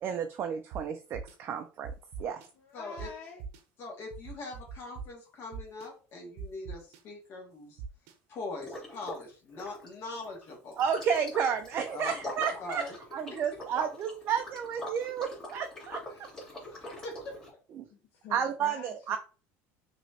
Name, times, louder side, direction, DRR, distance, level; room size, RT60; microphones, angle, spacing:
voice 1, 0.0-1.9 2.2-2.4 10.8-12.8 13.1-16.0 17.8-17.9 18.3-19.2, right 7 dB, 35° right, 5 dB, 0.5 m, -31 dB
sound 1, 0.7-0.8 1.1-1.3 1.8-2.5 3.0-3.1 3.4-3.6 4.1-5.0 5.5-5.9 6.4-7.0 7.8-8.1, right 6 dB, 65° right, 0.9 m, -40 dB
voice 2, 2.2-3.4 17.9-19.2, left 5 dB, 55° left, 0 dB, 1.2 m, -48 dB
voice 3, 2.7-3.1 3.8-7.8 8.3-10.8 11.9-12.2 12.6-12.9 16.1-16.3 16.7-17.4, left 3 dB, 40° left, 0 dB, 2.0 m, -42 dB
Liquid, 8.6-9.3 9.5-17.5, left 1 dB, 10° left, 2.7 m, -43 dB
6.0 x 3.0 x 2.9 m, 0.35 s
cardioid pair, 150°, 6 cm